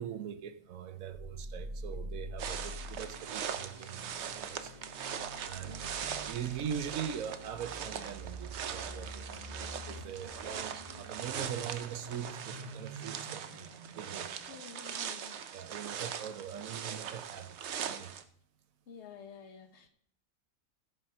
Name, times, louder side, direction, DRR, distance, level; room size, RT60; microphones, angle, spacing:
voice 1, 0.0-4.7 5.4-13.7 13.9-14.3 15.5-17.6 17.8-18.1, right 8 dB, 85° right, 1.2 m, -42 dB
sound 1, 1.1-14.9, right 1 dB, 30° right, 1.3 m, -46 dB
sound 2, 2.4-18.2, right 8 dB, 60° right, 0.9 m, -41 dB
voice 2, 5.6-6.0 14.5-15.4 18.9-19.9, left 6 dB, 55° left, 1.4 m, -51 dB
13.5 x 5.7 x 5.3 m
omnidirectional pair, 1.4 m